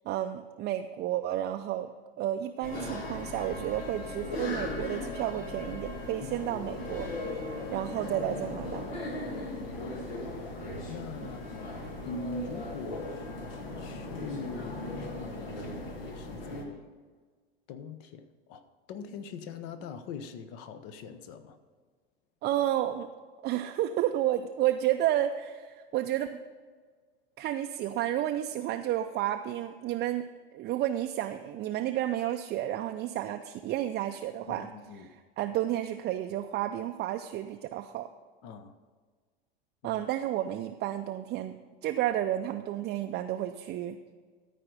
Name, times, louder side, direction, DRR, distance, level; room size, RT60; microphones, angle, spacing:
voice 1, 0.1-7.1 7.7-8.9 11.2-11.3 22.4-23.1 23.4-26.4 27.4-30.3 30.5-34.7 35.0-38.1 39.8-44.0, right 12 dB, 35° right, 6 dB, 0.5 m, -31 dB
sound 1, 2.6-16.6, left 2 dB, 75° left, 1.7 m, -38 dB
voice 2, 9.2-10.1 10.9-11.7 12.0-13.4 13.8-16.9 17.7-21.6 34.5-35.1 38.4-38.7 39.8-40.0, left 4 dB, 50° left, 11 dB, 1.0 m, -43 dB
13.5 x 5.0 x 6.5 m, 1.5 s
hypercardioid pair, 80°, 30 cm